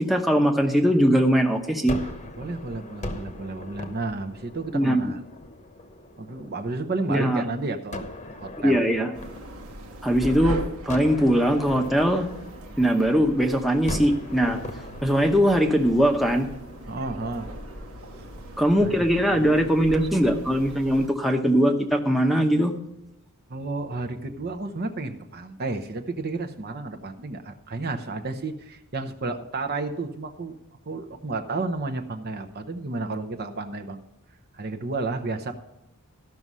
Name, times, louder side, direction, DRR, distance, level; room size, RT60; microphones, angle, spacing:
voice 1, 0.0-2.0 4.7-5.1 7.1-7.4 8.6-9.1 10.0-12.3 12.8-14.6 15.0-16.5 18.6-22.7, equal, ahead, 2 dB, 0.8 m, -21 dB
Gunshot gunfire, 1.9-7.0 7.9-10.3 10.9-13.4 13.9-19.1, left 1 dB, 30° left, 1.0 m, -40 dB
voice 2, 2.4-5.2 6.2-8.8 16.9-17.5 18.8-19.7 23.5-30.6 30.9-34.0 34.5-35.5, right 3 dB, 45° right, 5 dB, 0.8 m, -32 dB
sound 1, 9.1-21.1, right 1 dB, 70° right, 1.3 m, -40 dB
14.0 x 6.1 x 5.4 m, 0.91 s
head